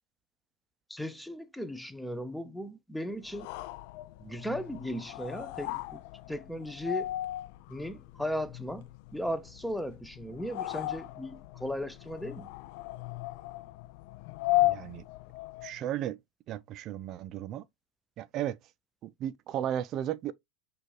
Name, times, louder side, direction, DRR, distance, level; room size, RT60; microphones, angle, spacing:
voice 1, 0.9-3.5 4.2-6.0 6.3-7.1 7.7-12.5, equal, ahead, 0.6 m, -36 dB
sound 1, 3.2-15.8, left 16 dB, 60° left, 0.3 m, -36 dB
voice 2, 14.6-15.0 15.6-16.2 16.5-17.6 18.2-18.6 19.0-20.3, right 11 dB, 45° right, 0.5 m, -34 dB
6.4 x 2.5 x 3.2 m
hypercardioid pair, 95°, 0 cm